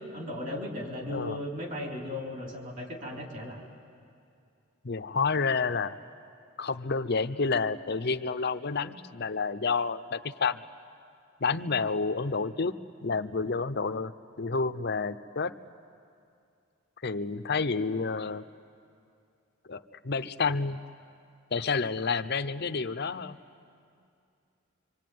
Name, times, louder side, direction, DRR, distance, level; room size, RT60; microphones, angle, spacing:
voice 1, 0.1-3.7, left 1 dB, 40° right, 0 dB, 4.1 m, -36 dB
voice 2, 1.1-1.4 4.8-6.0 6.6-10.6 11.4-12.8 13.0-14.1 14.4-15.5 17.0-18.4 19.7-20.8 21.5-23.4, left 4 dB, 50° left, 10 dB, 0.7 m, -29 dB
25.5 x 25.0 x 9.4 m, 2.4 s
head